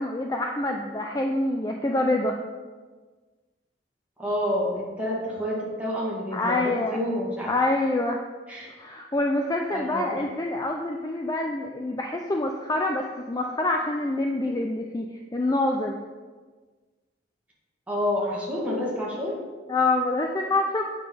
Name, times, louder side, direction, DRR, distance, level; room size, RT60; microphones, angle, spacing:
voice 1, 0.0-2.4 6.3-7.0 7.5-8.2 8.7-16.0 19.7-20.8, left 2 dB, 20° left, 2 dB, 0.4 m, -26 dB
voice 2, 4.2-7.5 8.5-8.7 9.7-10.2 17.9-19.4, left 1 dB, 10° right, -5 dB, 2.0 m, -29 dB
8.7 x 5.9 x 5.0 m, 1.4 s
head